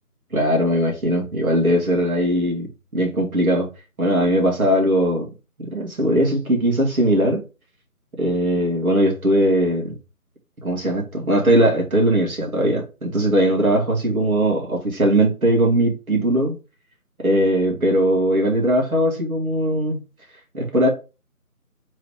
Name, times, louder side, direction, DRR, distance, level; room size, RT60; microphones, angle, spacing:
voice 1, 0.3-2.7 2.9-3.7 4.0-5.3 5.7-7.4 8.2-10.0 10.6-16.6 17.2-20.0 20.5-20.9, right 1 dB, 70° right, 1.9 m, -19 dB
3.7 x 3.3 x 3.4 m
figure-of-eight pair, 165°, 45 cm